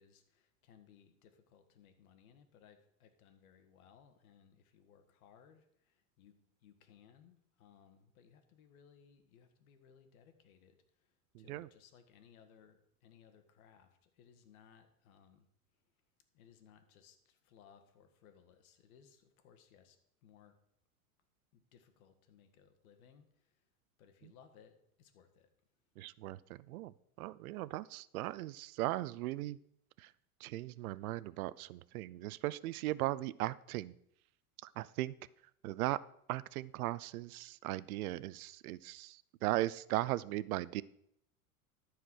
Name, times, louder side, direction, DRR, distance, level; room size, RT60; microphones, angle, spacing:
voice 1, 0.0-15.5 16.3-20.6 21.5-23.7 24.0-25.5, left 7 dB, 70° left, 8 dB, 1.8 m, -63 dB
voice 2, 11.3-11.7 24.2-24.3 26.0-29.6 30.0-30.1 30.4-33.9 34.6-35.1 35.6-36.0 36.3-40.8, right 17 dB, 75° right, 19 dB, 0.6 m, -38 dB
13.5 x 4.8 x 6.2 m, 0.73 s
hypercardioid pair, 105°, 44 cm